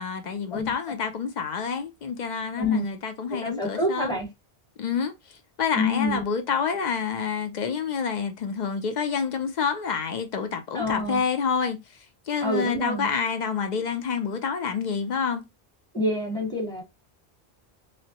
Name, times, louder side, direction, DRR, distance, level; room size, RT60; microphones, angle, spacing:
voice 1, 0.0-4.1 4.8-11.8 12.3-15.4, left 6 dB, 55° left, 0.5 m, -28 dB
voice 2, 2.6-2.9 3.4-4.3 5.8-6.2 10.7-11.2 12.4-13.1 15.9-16.8, left 2 dB, 5° left, 1.0 m, -27 dB
3.0 x 2.1 x 2.8 m
omnidirectional pair, 1.1 m